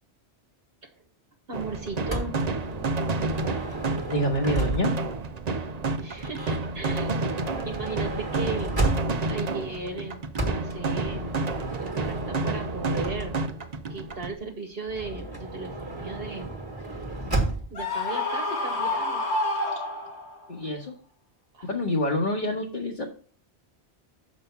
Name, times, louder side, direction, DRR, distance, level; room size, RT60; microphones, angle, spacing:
sound 1, 1.5-14.3, right 3 dB, 45° right, 0.7 m, -30 dB
voice 1, 1.5-2.3 6.0-7.4 7.6-8.9 9.3-10.2 10.5-11.3 11.8-13.3 13.9-16.6 17.7-19.2 19.5-19.7 21.5-21.7 22.4-22.5, right 3 dB, 60° right, 3 dB, 1.3 m, -36 dB
Motor vehicle (road) / Sliding door, 2.1-5.2 6.1-9.4 10.3-13.7 14.9-17.8, right 2 dB, 20° right, 1.5 m, -33 dB
voice 2, 4.0-4.9 20.5-20.9 21.6-23.1, equal, 50° left, -1 dB, 1.3 m, -27 dB
Screaming, 17.8-20.5, left 2 dB, 90° left, 2.1 m, -28 dB
6.8 x 5.3 x 5.7 m, 0.43 s
omnidirectional pair, 1.1 m